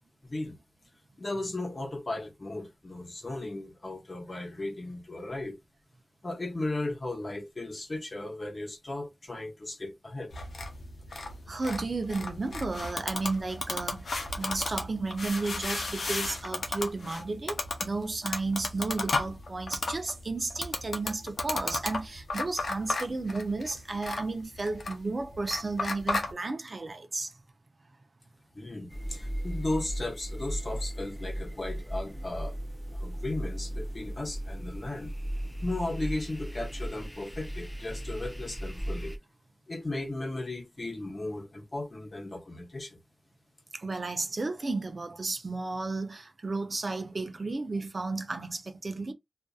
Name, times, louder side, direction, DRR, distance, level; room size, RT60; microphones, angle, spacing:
voice 1, 0.2-0.6 1.2-5.6 6.2-10.3 28.5-32.6 32.9-35.1 35.6-39.2 39.7-43.0, left 2 dB, 45° left, 1.0 m, -36 dB
sound 1, 10.3-26.3, left 3 dB, 80° left, 0.7 m, -34 dB
voice 2, 11.5-27.4 43.7-49.1, right 3 dB, 55° right, 0.6 m, -33 dB
sound 2, 28.9-39.2, equal, 5° left, 0.6 m, -36 dB
2.6 x 2.5 x 2.3 m
cardioid pair, 55°, 0 cm